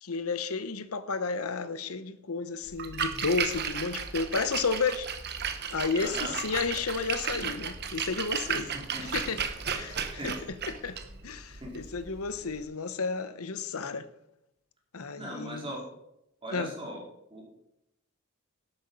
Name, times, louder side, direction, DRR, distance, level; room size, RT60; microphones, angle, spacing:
voice 1, 0.0-5.1 5.7-8.7 9.0-9.4 9.8-10.3 10.7-14.1 14.9-15.7 16.5-16.7, left 4 dB, 90° left, 0.9 m, -32 dB
Splash splatter, 2.7-12.6, right 7 dB, 50° right, 1.2 m, -34 dB
voice 2, 6.0-6.3 8.4-9.1 10.0-10.3 11.5-11.7 15.1-15.9 16.4-17.0 17.3-17.5, right 1 dB, 25° right, 4.0 m, -39 dB
11.5 x 8.7 x 5.3 m
head